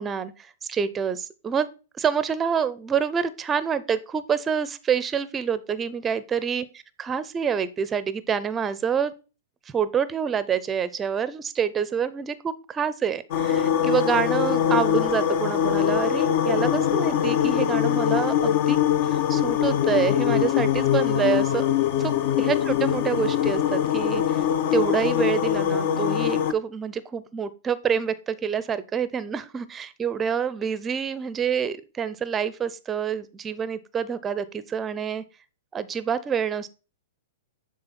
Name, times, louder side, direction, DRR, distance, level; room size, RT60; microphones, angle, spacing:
voice 1, 0.0-1.7 2.0-6.7 7.0-9.1 9.7-18.8 19.0-21.6 22.0-22.1 22.4-24.5 24.7-35.2 35.7-36.7, right 7 dB, 20° right, 15 dB, 0.5 m, -27 dB
sound 1, 13.3-26.5, left 9 dB, 55° left, 0.5 m, -23 dB
6.7 x 3.8 x 4.1 m, 0.33 s
hypercardioid pair, 125°, 0 cm